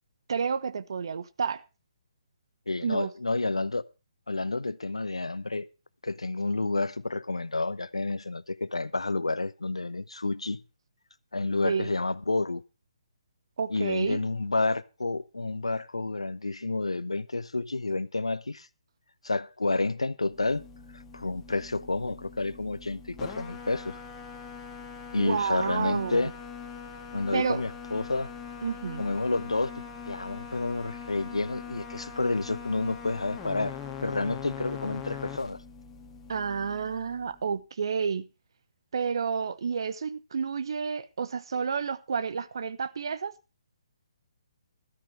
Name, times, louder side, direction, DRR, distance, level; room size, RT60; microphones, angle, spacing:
voice 1, 0.3-1.6 2.8-3.1 11.6-11.9 13.6-14.2 25.2-26.3 27.3-27.6 28.6-29.0 36.3-38.3 38.9-43.3, right 6 dB, 55° right, 1.0 m, -30 dB
voice 2, 2.7-3.8 4.3-5.7 6.0-10.6 11.3-12.6 13.7-18.7 19.2-20.7 20.9-24.0 25.1-26.3 27.1-28.3 29.0-35.6, left 3 dB, 75° left, 0.8 m, -30 dB
sound 1, 20.3-37.5, left 6 dB, 15° left, 2.1 m, -42 dB
13.0 x 13.0 x 3.3 m
figure-of-eight pair, 135°, 3 cm